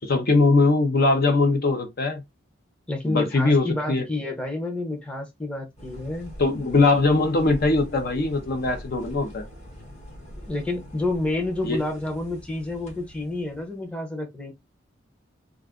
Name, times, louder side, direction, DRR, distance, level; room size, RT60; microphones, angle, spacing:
voice 1, 0.0-2.2 3.0-4.1 6.4-9.4 11.6-11.8, left 3 dB, 50° left, 0.7 m, -21 dB
voice 2, 2.9-6.3 10.4-14.5, left 2 dB, 5° left, 0.7 m, -29 dB
sound 1, 5.8-13.9, equal, 35° left, 1.1 m, -43 dB
2.4 x 2.4 x 3.5 m
head